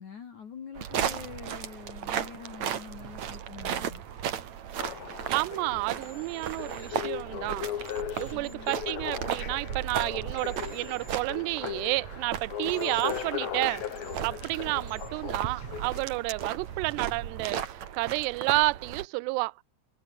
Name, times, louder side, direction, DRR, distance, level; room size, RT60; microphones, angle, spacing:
voice 1, 0.0-4.0 8.3-8.7, left 7 dB, 45° left, 3.4 m, -45 dB
sound 1, 0.7-19.0, right 9 dB, 50° right, 2.4 m, -36 dB
sound 2, 4.7-4.8 6.0-7.0 7.9-8.9 10.3-11.2 12.7-13.3 13.9-14.2 14.9-15.1, left 1 dB, 5° left, 2.8 m, -54 dB
sound 3, 4.8-16.4 17.0-17.1, left 11 dB, 70° left, 4.2 m, -38 dB
voice 2, 5.3-13.8 14.2-19.5, right 25 dB, 80° right, 2.5 m, -31 dB
omnidirectional pair, 5.3 m